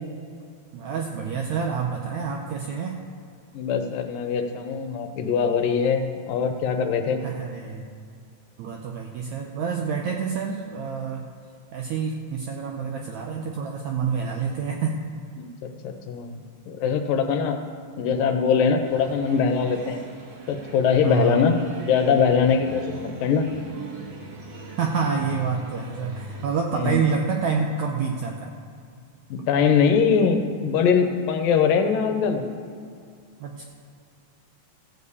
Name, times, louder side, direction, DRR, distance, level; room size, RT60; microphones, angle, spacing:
voice 1, 0.7-3.0 7.2-7.9 8.6-11.3 11.7-15.0 21.0-21.4 24.8-28.5 33.4-33.6, right 5 dB, 80° right, 2 dB, 1.7 m, -27 dB
voice 2, 3.5-7.2 15.4-15.5 15.8-16.4 16.7-17.6 18.0-20.0 20.5-23.5 26.7-27.0 29.3-32.4, left 6 dB, 75° left, 6 dB, 2.4 m, -22 dB
sound 1, 18.8-26.5, right 2 dB, 55° right, 2.4 m, -41 dB
14.5 x 5.3 x 8.2 m, 2.3 s
omnidirectional pair, 4.1 m